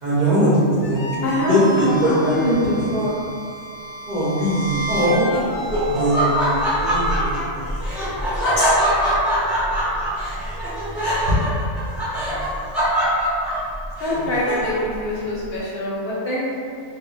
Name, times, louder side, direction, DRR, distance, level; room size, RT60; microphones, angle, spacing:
voice 1, 0.0-1.1 1.4-2.3 2.8-2.9 4.1-5.4 5.9-7.6 8.0-8.3 8.6-8.7 11.9-12.4 14.1-14.2, right 1 dB, 50° right, -9 dB, 0.6 m, -21 dB
sound 1, 0.8-7.1, right 2 dB, 90° left, 1.0 m, -33 dB
voice 2, 1.2-3.1 9.8-10.0 11.0-11.4 14.0-16.6, left 1 dB, 65° left, -7 dB, 0.8 m, -24 dB
Laughter, 4.9-15.0, equal, ahead, 0.3 m, -23 dB
2.1 x 2.0 x 3.7 m, 2.3 s
omnidirectional pair, 1.2 m